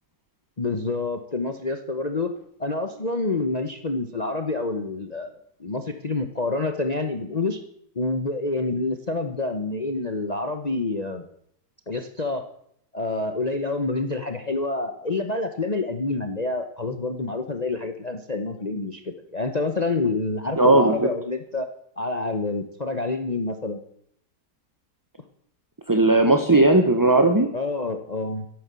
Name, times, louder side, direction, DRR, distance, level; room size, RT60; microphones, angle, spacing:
voice 1, 0.6-2.3 2.6-5.3 5.6-7.6 7.9-11.2 11.9-12.5 12.9-21.7 22.0-23.8 27.5-28.5, left 3 dB, 30° left, 7 dB, 1.0 m, -27 dB
voice 2, 20.6-21.1 25.9-27.5, right 2 dB, 15° right, 6 dB, 0.8 m, -17 dB
13.5 x 11.0 x 7.6 m, 0.70 s
omnidirectional pair, 1.8 m